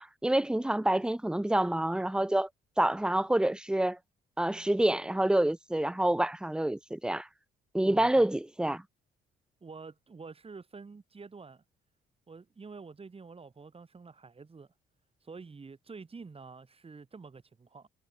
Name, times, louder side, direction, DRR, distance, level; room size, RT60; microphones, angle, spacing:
voice 1, 0.0-2.5 2.8-4.0 4.4-7.3 7.7-8.8, right 1 dB, 5° right, 0.8 m, -27 dB
voice 2, 7.8-8.2 9.6-11.6 12.3-14.7 15.2-17.9, right 4 dB, 30° right, 3.1 m, -48 dB
cardioid pair, 90°, 20 cm